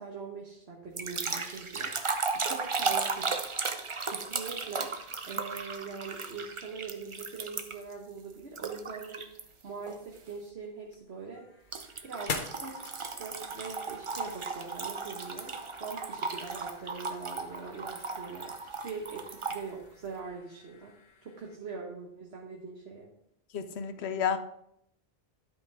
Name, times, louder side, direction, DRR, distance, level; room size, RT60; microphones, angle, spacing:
voice 1, 0.0-3.3 4.0-15.5 15.8-20.9 21.2-23.1, right 5 dB, 85° right, -2 dB, 1.5 m, -43 dB
sound 1, 1.0-7.9 8.6-9.4 9.9-10.2 11.7-19.6, right 4 dB, 35° right, 0.6 m, -35 dB
sound 2, 10.6-21.6, left 4 dB, 55° left, 1.0 m, -46 dB
voice 2, 23.5-24.4, left 7 dB, 85° left, 9 dB, 1.0 m, -31 dB
12.0 x 5.4 x 3.5 m, 0.74 s
omnidirectional pair, 1.1 m